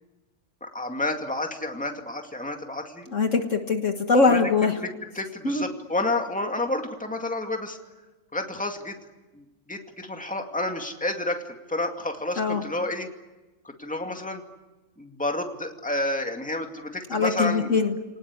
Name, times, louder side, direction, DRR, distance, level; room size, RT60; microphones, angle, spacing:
voice 1, 0.6-3.1 4.2-4.5 4.8-4.9 5.1-7.8 8.3-9.0 9.3-13.1 13.6-14.4 15.0-17.7, left 2 dB, 5° left, 3 dB, 2.3 m, -30 dB
voice 2, 3.1-4.7 5.4-5.7 12.4-12.6 17.1-17.9, left 4 dB, 55° left, 5 dB, 1.9 m, -22 dB
29.5 x 19.5 x 9.8 m, 1.1 s
omnidirectional pair, 1.6 m